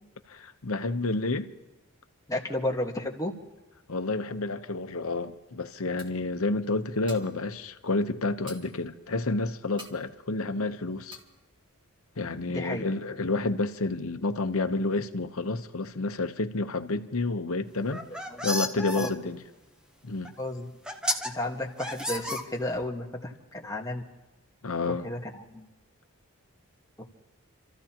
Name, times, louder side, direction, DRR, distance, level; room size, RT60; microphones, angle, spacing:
voice 1, 0.3-1.5 3.9-11.2 12.2-18.0 18.4-19.4 20.0-20.4 24.6-25.1, left 3 dB, 70° left, 0.9 m, -30 dB
voice 2, 2.3-3.3 12.5-12.8 18.3-18.4 19.0-19.1 20.4-20.7 21.0-21.1 21.3-24.0 25.0-25.7 27.0-27.1, left 1 dB, 15° left, 1.5 m, -32 dB
sound 1, 6.0-6.4 6.9-7.5 7.8-7.9 8.2-8.9 9.3-9.4 9.8-10.1 10.5-10.7 11.1-11.4, equal, 20° right, 2.1 m, -48 dB
sound 2, 17.8-19.1 20.2-20.3 20.8-21.3 21.8-22.9, left 1 dB, 5° right, 0.8 m, -32 dB
29.5 x 14.0 x 2.9 m
head